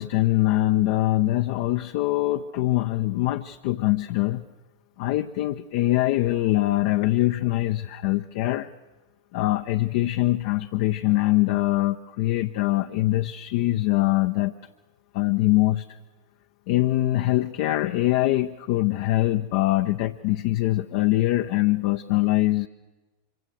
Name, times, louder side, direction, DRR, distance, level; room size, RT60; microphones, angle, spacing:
voice 1, 0.0-4.5 5.0-8.7 9.3-14.5 15.1-16.0 16.7-22.7, left 16 dB, 50° left, 7 dB, 0.7 m, -23 dB
25.5 x 23.5 x 6.4 m, 1.2 s
figure-of-eight pair, 90°, 0 cm